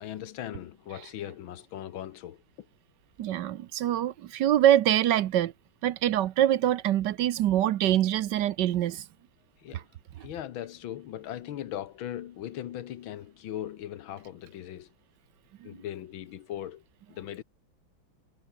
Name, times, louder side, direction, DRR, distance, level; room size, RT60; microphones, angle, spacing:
voice 1, 0.0-2.7 9.6-9.9 10.2-14.9 15.6-17.4, left 11 dB, 85° left, 1.8 m, -39 dB
voice 2, 3.2-5.5 5.8-9.0, right 12 dB, 70° right, 1.3 m, -24 dB
omnidirectional pair, 2.1 m